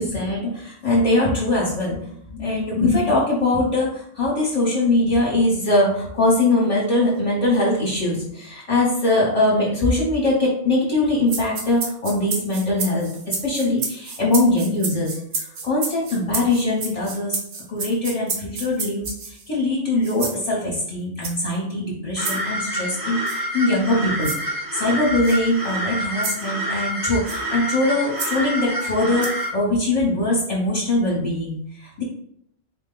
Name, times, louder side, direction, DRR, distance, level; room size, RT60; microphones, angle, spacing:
voice 1, 0.0-17.4 17.7-32.0, left 2 dB, 35° left, -5 dB, 0.9 m, -22 dB
sound 1, 11.3-19.5 20.0-20.4 21.2-21.5 22.2-22.4 23.3-23.4 24.2-24.4 25.2-25.4 26.2-26.4 27.3-27.4 28.2-28.3 29.2-29.5, right 4 dB, 75° right, 1.1 m, -30 dB
sound 2, 22.2-29.5, right 1 dB, 20° right, 0.8 m, -28 dB
4.3 x 2.2 x 3.8 m, 0.70 s
omnidirectional pair, 1.2 m